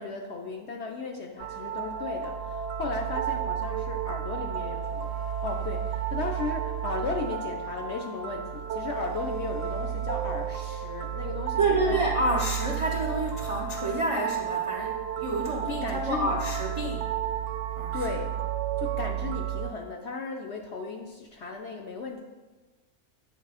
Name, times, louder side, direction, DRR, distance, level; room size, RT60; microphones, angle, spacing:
voice 1, 0.0-5.1 5.4-12.0 15.7-16.4 17.9-18.4 18.8-22.2, left 4 dB, 65° left, 2 dB, 0.7 m, -35 dB
sound 1, 1.4-19.7, right 9 dB, 65° right, 0.8 m, -32 dB
voice 2, 11.6-17.2 17.8-18.2, right 2 dB, 45° right, -1 dB, 0.4 m, -29 dB
8.6 x 3.2 x 4.7 m, 1.2 s
omnidirectional pair, 1.6 m